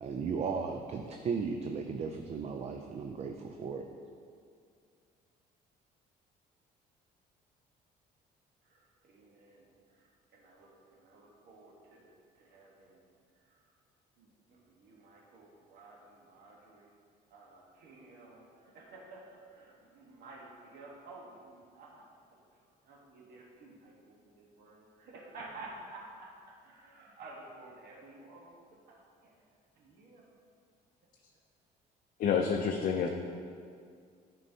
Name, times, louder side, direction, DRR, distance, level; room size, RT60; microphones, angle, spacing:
voice 1, 0.0-3.8, right 5 dB, 40° right, 5 dB, 0.4 m, -36 dB
voice 2, 8.6-12.1 12.3-13.0 13.5-13.6 14.2-16.9 17.3-29.5 29.8-30.3, right 2 dB, 70° right, -2 dB, 1.3 m, -53 dB
voice 3, 32.2-33.1, left 6 dB, 55° left, 2 dB, 0.5 m, -28 dB
9.5 x 5.3 x 2.8 m, 2.2 s
cardioid pair, 110°, 17 cm